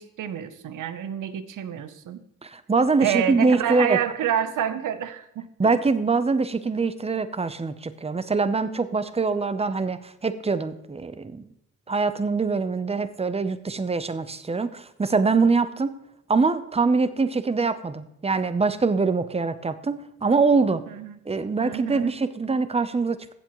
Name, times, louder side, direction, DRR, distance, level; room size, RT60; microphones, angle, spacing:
voice 1, 0.0-2.2 3.0-5.5 20.9-21.2 21.6-22.1, right 10 dB, 80° right, 12 dB, 0.8 m, -28 dB
voice 2, 2.4-4.0 5.6-11.5 11.9-15.9 16.3-20.9 21.3-23.3, right 4 dB, 20° right, 13 dB, 0.6 m, -24 dB
15.0 x 7.6 x 3.1 m, 0.80 s
cardioid pair, 75°, 31 cm